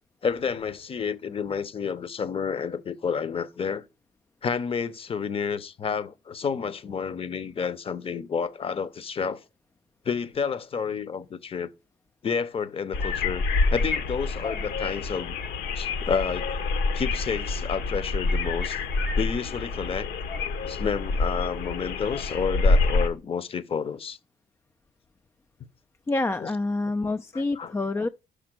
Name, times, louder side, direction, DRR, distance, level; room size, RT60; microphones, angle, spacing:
voice 1, 0.2-3.8 4.4-9.4 10.0-11.7 12.2-13.4 13.7-15.4 15.7-16.5 16.9-18.8 19.2-20.1 20.7-24.2 26.4-26.5 27.3-27.7, left 6 dB, 35° left, 0.8 m, -30 dB
sound 1, 12.9-23.1, left 3 dB, 75° left, 1.3 m, -27 dB
voice 2, 26.1-28.1, left 2 dB, 15° left, 0.3 m, -27 dB
6.0 x 5.0 x 6.0 m
cardioid pair, 110°, 17 cm